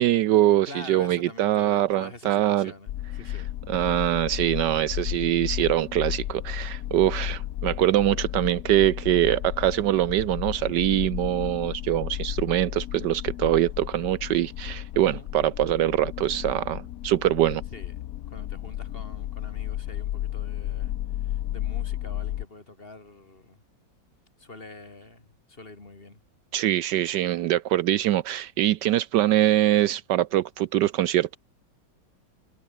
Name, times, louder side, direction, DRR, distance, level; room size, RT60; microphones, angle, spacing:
voice 1, 0.0-2.7 3.7-17.6 26.5-31.4, right 13 dB, 75° right, 1.2 m, -23 dB
voice 2, 0.6-3.5 14.9-15.3 17.7-17.9 18.3-23.6 24.4-26.2, left 2 dB, 30° left, 2.8 m, -45 dB
sound 1, 2.9-22.5, left 13 dB, 65° left, 0.9 m, -33 dB
omnidirectional pair, 2.0 m